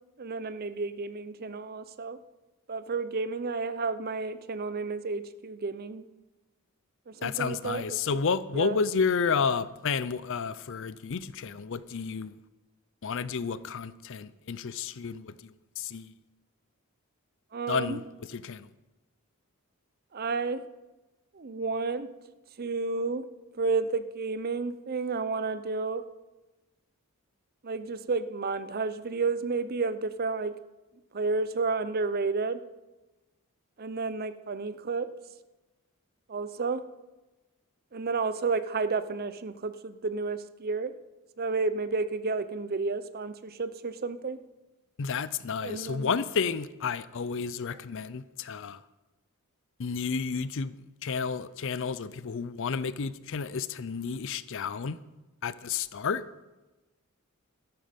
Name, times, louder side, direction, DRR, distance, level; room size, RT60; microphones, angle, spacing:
voice 1, 0.2-2.2 2.7-6.0 7.1-8.2 8.5-8.8 17.5-18.0 20.1-20.6 21.3-22.1 22.6-23.3 23.6-26.0 27.6-30.5 31.1-32.6 33.8-35.1 36.3-36.8 37.9-40.9 41.4-44.4 45.6-46.1, right 4 dB, 45° right, 0.6 m, -31 dB
voice 2, 7.2-12.3 13.0-16.1 17.7-18.0 18.3-18.7 45.0-48.8 49.8-50.7 51.0-55.0 55.4-56.2, left 5 dB, 60° left, 0.5 m, -31 dB
13.0 x 11.5 x 5.2 m
head